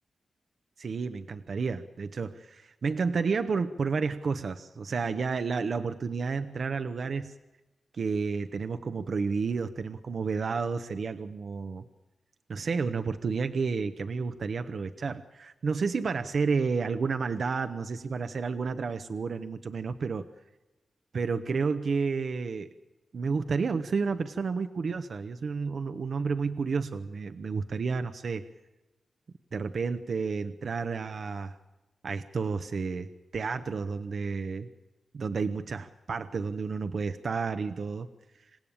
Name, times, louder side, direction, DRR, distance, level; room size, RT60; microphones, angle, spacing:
voice 1, 0.8-7.3 8.0-11.8 12.5-20.3 21.1-22.7 23.1-28.4 29.5-31.6 32.0-34.7 35.1-38.1, right 5 dB, 65° right, 9 dB, 1.0 m, -31 dB
27.0 x 16.5 x 8.8 m, 1.1 s
supercardioid pair, 40°, 0 cm